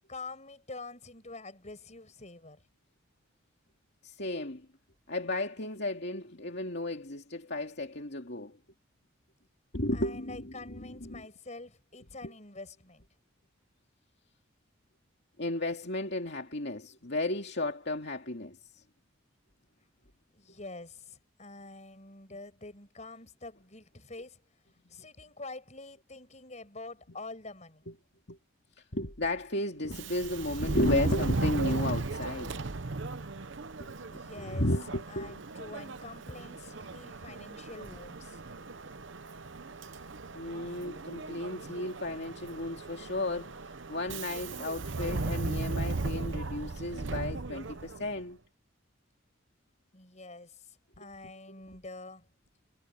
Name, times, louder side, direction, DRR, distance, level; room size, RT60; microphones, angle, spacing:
voice 1, 0.1-2.6 9.9-13.0 20.3-24.4 24.9-27.9 34.0-34.7 35.1-38.4 49.9-52.3, left 3 dB, 35° left, 6.1 m, -46 dB
voice 2, 4.0-4.7 5.1-8.6 9.7-11.3 12.2-12.3 15.4-18.8 27.9-28.0 28.3-28.4 28.8-32.6 33.8-35.4 40.3-43.6 43.9-48.4 51.0-51.1, left 1 dB, 55° left, 2.6 m, -34 dB
Subway metro underground, 29.8-48.2, right 3 dB, 65° right, 0.9 m, -36 dB
head